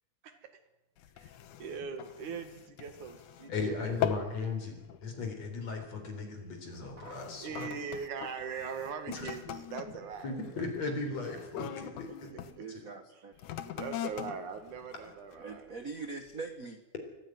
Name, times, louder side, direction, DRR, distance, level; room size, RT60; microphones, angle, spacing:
sound 1, 1.0-3.6 3.8-4.4 4.8-5.1 5.8-6.0 6.7-12.6 13.3-15.7 16.3-16.4, left 11 dB, 75° left, 2.6 m, -41 dB
voice 1, 1.6-4.3 4.6-4.7 7.4-10.7 12.1-12.8 13.7-15.7, right 6 dB, 75° right, 8 dB, 3.4 m, -41 dB
voice 2, 3.5-7.7 9.1-9.3 10.2-12.3 12.7-12.8, left 3 dB, 55° left, 5 dB, 5.2 m, -37 dB
voice 3, 12.3-13.3 15.4-16.8, right 4 dB, 40° right, 7 dB, 1.2 m, -43 dB
24.0 x 15.5 x 9.4 m, 0.99 s
omnidirectional pair, 3.5 m